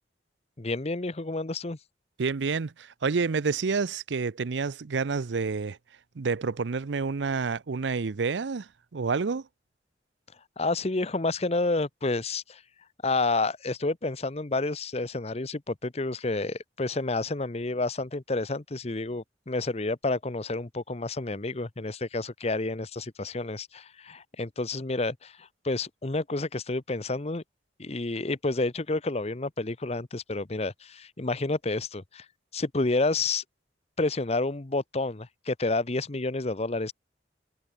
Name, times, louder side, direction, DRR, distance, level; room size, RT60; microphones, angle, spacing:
voice 1, 0.6-1.8 10.6-12.6 13.0-27.4 27.8-32.3 32.5-33.4 34.0-36.9, left 2 dB, 35° left, 0.9 m, -29 dB
voice 2, 2.2-5.8 6.2-9.4, right 4 dB, 90° right, 0.6 m, -29 dB
head